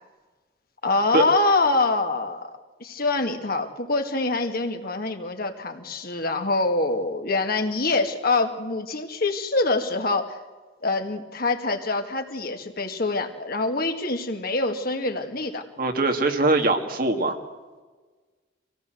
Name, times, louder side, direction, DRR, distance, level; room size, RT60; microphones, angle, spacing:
voice 1, 0.8-2.5 2.8-10.4 10.8-15.6, left 3 dB, 55° left, 5 dB, 2.2 m, -25 dB
voice 2, 15.8-17.4, right 2 dB, 50° right, 5 dB, 2.3 m, -22 dB
25.0 x 18.0 x 7.9 m, 1.4 s
head